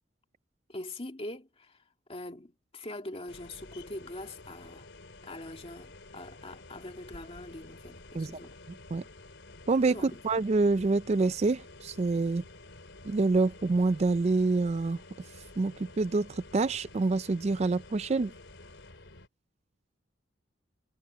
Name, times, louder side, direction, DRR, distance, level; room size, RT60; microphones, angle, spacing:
voice 1, 0.7-1.8 2.1-4.9 5.2-8.6 9.9-10.2, left 1 dB, 30° left, 2.2 m, -43 dB
sound 1, 3.3-19.3, left 2 dB, 75° left, 3.6 m, -50 dB
voice 2, 9.7-12.4 13.0-15.0 15.6-18.3, right 3 dB, 35° right, 0.4 m, -27 dB
head